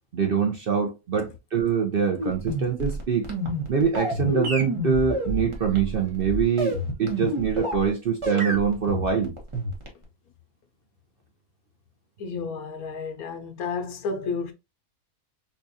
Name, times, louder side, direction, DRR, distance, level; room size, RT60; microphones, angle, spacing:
voice 1, 0.1-3.3 3.7-9.3, right 6 dB, 55° right, 0.6 m, -24 dB
sound 1, 2.2-7.9 8.2-10.0, equal, 25° right, 0.8 m, -29 dB
voice 2, 12.2-14.5, left 4 dB, 80° left, 1.2 m, -31 dB
4.2 x 2.4 x 2.6 m
omnidirectional pair, 1.5 m